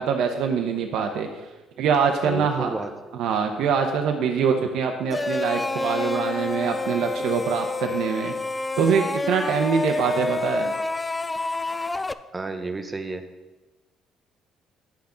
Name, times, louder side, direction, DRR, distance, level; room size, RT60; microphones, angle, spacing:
voice 1, 0.0-1.5 1.8-2.7 3.1-8.3 8.8-10.7, right 6 dB, 75° right, 4 dB, 0.7 m, -24 dB
voice 2, 2.2-2.9 12.3-13.2, right 3 dB, 20° right, 8 dB, 0.8 m, -31 dB
sound 1, 5.1-12.1, left 3 dB, 15° left, 0.3 m, -28 dB
9.8 x 5.9 x 3.9 m, 1.2 s
cardioid pair, 100°, 0 cm